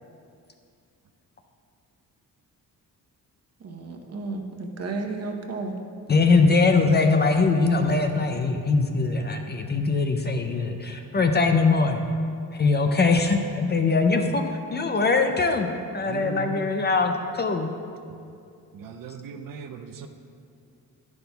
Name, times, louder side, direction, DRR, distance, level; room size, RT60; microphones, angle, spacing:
voice 1, 3.6-5.7, right 3 dB, 45° right, 3 dB, 0.9 m, -33 dB
voice 2, 6.1-12.0 12.5-14.4 14.7-17.7, left 4 dB, 30° left, 5 dB, 0.5 m, -22 dB
voice 3, 16.1-16.6 18.7-20.1, right 6 dB, 65° right, 6 dB, 0.6 m, -37 dB
11.0 x 10.5 x 2.3 m, 2.4 s
wide cardioid pair, 145°, 36 cm